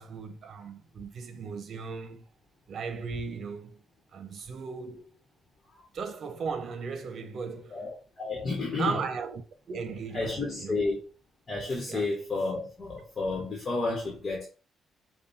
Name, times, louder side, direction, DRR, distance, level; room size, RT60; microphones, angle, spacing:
voice 1, 0.0-2.3 2.7-3.8 4.1-5.2 5.9-7.8 8.7-10.8 11.9-12.1, right 5 dB, 55° right, 0.9 m, -37 dB
voice 2, 7.7-9.0 10.1-11.0 11.5-14.5, left 3 dB, 35° left, 1.3 m, -31 dB
5.3 x 2.4 x 4.2 m
cardioid pair, 90°, 0 cm